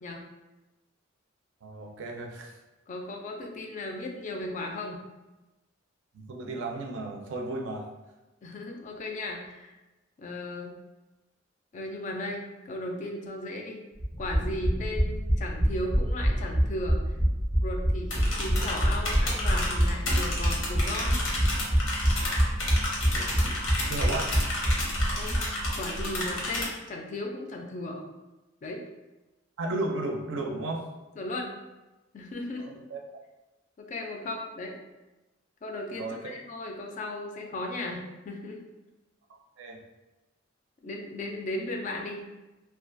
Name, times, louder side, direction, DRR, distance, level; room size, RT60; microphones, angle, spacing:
voice 1, 1.6-2.5 6.1-7.9 23.1-24.3 29.6-30.9 32.6-33.0 36.0-36.3 39.3-39.8, right 2 dB, 70° right, 1 dB, 0.4 m, -35 dB
voice 2, 2.9-5.0 8.4-9.8 10.2-10.8 11.7-13.8 14.2-17.0 17.6-21.2 25.2-25.4 25.8-28.0 28.6-28.8 31.2-31.6 32.1-32.7 33.8-34.8 35.6-38.6 40.8-42.2, left 1 dB, 40° left, 2 dB, 0.3 m, -36 dB
sound 1, 14.0-25.7 26.0-26.1 26.3-26.4, equal, 15° right, 0.5 m, -26 dB
sound 2, 18.1-26.7, left 1 dB, 85° left, 0.7 m, -32 dB
2.3 x 2.2 x 2.5 m, 1.1 s
head